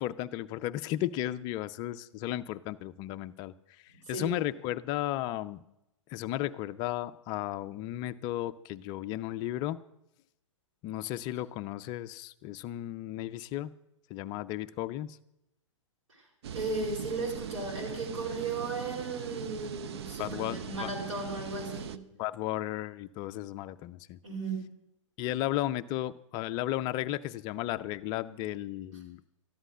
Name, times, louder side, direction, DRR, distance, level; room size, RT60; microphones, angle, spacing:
voice 1, 0.0-3.5 3.8-5.6 6.1-9.8 10.8-13.7 14.1-15.2 20.2-20.9 22.2-24.2 25.2-29.2, left 14 dB, 25° left, 13 dB, 0.4 m, -34 dB
sound 1, 16.4-22.0, right 8 dB, 55° right, 0.6 m, -40 dB
voice 2, 16.5-22.0 24.2-24.7, right 3 dB, 75° right, -3 dB, 4.9 m, -35 dB
13.5 x 11.0 x 6.2 m, 0.85 s
figure-of-eight pair, 115°, 17 cm